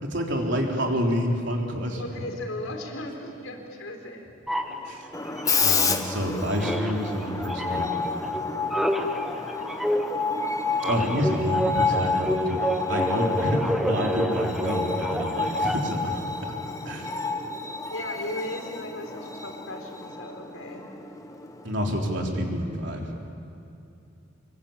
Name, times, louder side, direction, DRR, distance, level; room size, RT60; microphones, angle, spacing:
voice 1, 0.0-2.0 4.9-5.0 5.6-8.1 10.9-12.6 12.9-16.2 16.9-17.1 21.6-23.2, equal, 60° right, 0 dB, 3.9 m, -28 dB
voice 2, 2.0-4.2 4.7-4.9 17.9-20.9, left 1 dB, 85° left, 3 dB, 4.6 m, -36 dB
sound 1, 4.5-6.3 6.6-16.1, equal, ahead, 1.4 m, -29 dB
Screech, 5.1-21.7, left 4 dB, 15° left, 1.2 m, -30 dB
26.0 x 22.5 x 8.9 m, 2.7 s
head